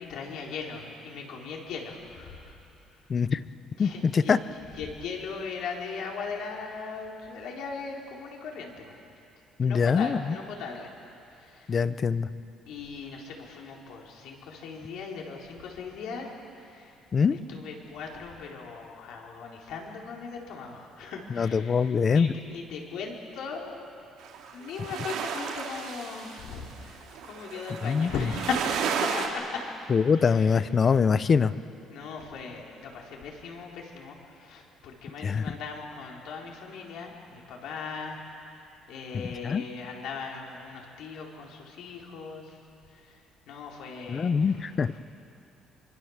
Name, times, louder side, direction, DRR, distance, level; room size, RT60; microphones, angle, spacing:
voice 1, 0.0-2.6 3.7-4.4 4.7-8.9 9.6-10.9 11.3-11.8 12.7-17.0 17.3-23.9 24.5-29.6 30.1-31.0 31.9-38.2 38.9-42.6 42.9-45.0, left 5 dB, 70° left, -1 dB, 4.3 m, -39 dB
voice 2, 3.1-3.4 3.8-4.4 9.6-10.4 11.7-12.3 17.1-17.4 21.3-22.3 27.8-28.1 29.9-31.5 35.2-35.4 39.4-39.6 44.1-44.9, left 6 dB, 30° left, 15 dB, 0.7 m, -23 dB
sound 1, 24.2-29.3, right 6 dB, 80° right, 3.1 m, -33 dB
25.5 x 25.0 x 7.4 m, 2.7 s
cardioid pair, 140°, 0 cm